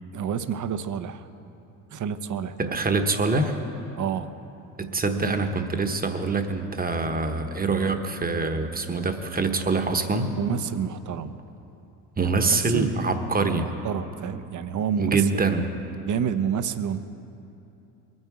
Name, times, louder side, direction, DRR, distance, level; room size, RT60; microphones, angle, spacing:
voice 1, 0.1-1.3 1.9-2.7 4.0-4.3 10.4-11.3 12.2-12.3 12.6-12.9 13.6-15.4 16.0-17.0, right 8 dB, 45° right, 12 dB, 0.8 m, -29 dB
voice 2, 2.6-3.6 4.8-10.3 12.2-13.7 15.0-15.7, right 3 dB, 20° right, 6 dB, 1.2 m, -25 dB
22.0 x 9.6 x 4.9 m, 2.8 s
supercardioid pair, 80°, 44 cm